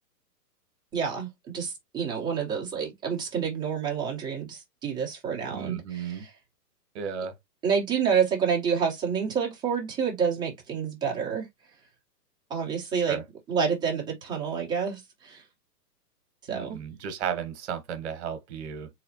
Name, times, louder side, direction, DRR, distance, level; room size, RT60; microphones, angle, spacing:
voice 1, 0.9-1.3 1.5-6.3 7.6-11.5 12.5-13.2 13.5-15.4 16.4-16.8, right 6 dB, 10° right, 1.1 m, -28 dB
voice 2, 5.5-6.3 6.9-7.3 13.0-13.2 16.5-18.9, right 7 dB, 45° right, 1.3 m, -34 dB
4.0 x 3.1 x 2.8 m
hypercardioid pair, 155°, 49 cm